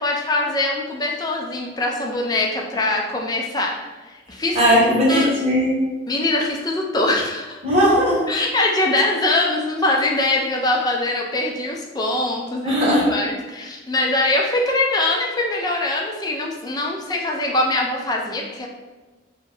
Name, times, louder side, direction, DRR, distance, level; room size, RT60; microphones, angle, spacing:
voice 1, 0.0-3.8 4.0-4.6 5.1-5.3 6.1-7.6 8.3-12.8 13.1-18.7, left 2 dB, 20° left, 0 dB, 0.3 m, -22 dB
voice 2, 4.5-5.8 7.6-8.2 12.6-13.1, equal, 35° right, -6 dB, 0.9 m, -17 dB
2.6 x 2.1 x 3.1 m, 1.2 s
head